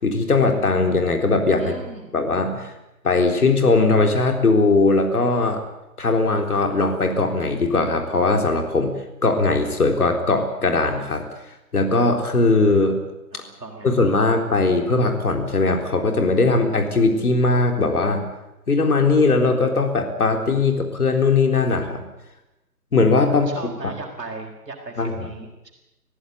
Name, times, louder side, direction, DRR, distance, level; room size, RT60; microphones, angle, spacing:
voice 1, 0.0-1.7 2.1-2.7 3.0-5.6 6.0-8.9 9.2-11.2 11.7-13.0 13.8-18.2 18.7-22.0 22.9-23.5 23.8-23.9 25.0-25.1, left 3 dB, 65° left, 4 dB, 4.0 m, -19 dB
voice 2, 1.6-2.1 13.3-14.1 23.3-25.7, right 3 dB, 80° right, 2 dB, 4.2 m, -37 dB
24.0 x 15.0 x 9.5 m, 0.95 s
hypercardioid pair, 170°, 49 cm